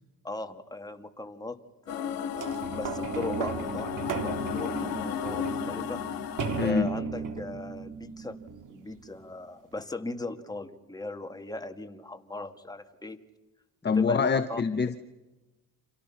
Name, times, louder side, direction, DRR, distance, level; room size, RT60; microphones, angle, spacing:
voice 1, 0.2-1.6 1.9-6.3 6.6-8.4 8.7-13.2 13.8-14.6, left 2 dB, 10° left, 6 dB, 2.1 m, -38 dB
sound 1, 1.9-6.7, left 9 dB, 70° left, 2.2 m, -34 dB
sound 2, 2.4-9.1 9.8-9.9, right 6 dB, 60° right, 2.9 m, -36 dB
voice 2, 6.6-6.9 13.8-15.0, left 5 dB, 30° left, 10 dB, 1.1 m, -25 dB
29.0 x 27.5 x 5.9 m, 1.1 s
supercardioid pair, 80°, 36 cm